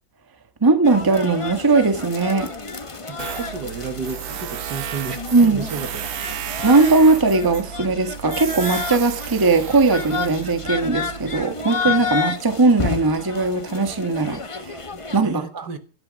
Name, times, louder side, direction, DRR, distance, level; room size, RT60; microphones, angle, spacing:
voice 1, 0.6-2.5 5.3-5.7 6.6-14.8 15.1-15.7, right 3 dB, 10° right, 1.3 m, -19 dB
sound 1, 0.8-15.2, left 4 dB, 30° left, 0.6 m, -31 dB
voice 2, 3.1-6.5 15.2-15.8, right 5 dB, 55° right, 2.2 m, -32 dB
Tools, 3.2-11.4, right 11 dB, 70° right, 1.7 m, -33 dB
17.0 x 12.5 x 5.3 m
omnidirectional pair, 2.2 m